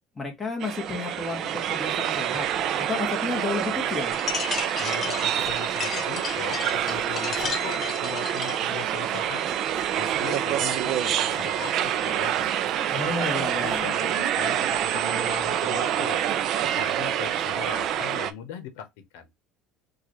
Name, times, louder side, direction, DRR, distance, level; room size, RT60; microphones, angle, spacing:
voice 1, 0.1-2.5 2.9-4.1 12.9-14.0, left 3 dB, 10° left, 1.2 m, -32 dB
sound 1, 0.6-18.3, right 10 dB, 45° right, 0.4 m, -27 dB
sound 2, 4.1-8.7, left 5 dB, 25° left, 0.6 m, -34 dB
voice 2, 4.8-9.4 10.0-12.3 13.0-16.2 16.6-19.3, left 8 dB, 85° left, 0.8 m, -39 dB
Zipper (clothing), 5.3-5.7 6.5-7.0 7.3-7.6 8.0-8.1 8.4-8.8 9.1-10.2 10.9-11.6 11.8-14.0 14.6-15.6, right 1 dB, 15° right, 1.2 m, -46 dB
4.6 x 2.4 x 3.0 m
cardioid pair, 160°, 0 cm